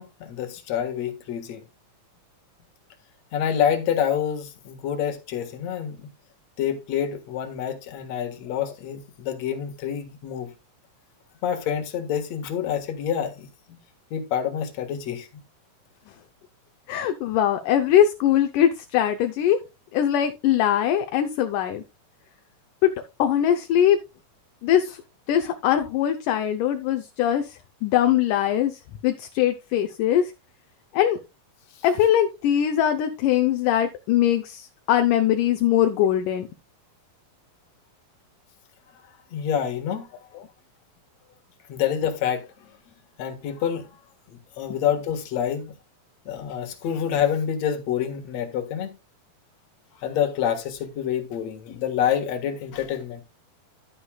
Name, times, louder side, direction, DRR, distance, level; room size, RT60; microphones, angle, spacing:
voice 1, 0.0-1.6 3.3-6.1 6.6-10.5 11.4-13.5 14.1-15.3 39.3-40.1 41.7-42.7 43.2-44.0 44.3-45.7 46.3-48.9 50.0-53.2, left 9 dB, 55° left, 2.5 m, -27 dB
voice 2, 16.9-19.6 19.9-21.8 22.8-22.9 23.2-24.0 24.6-25.0 25.3-30.3 30.9-31.2 31.8-36.5, left 10 dB, 75° left, 2.2 m, -21 dB
11.5 x 9.7 x 2.3 m
omnidirectional pair, 4.0 m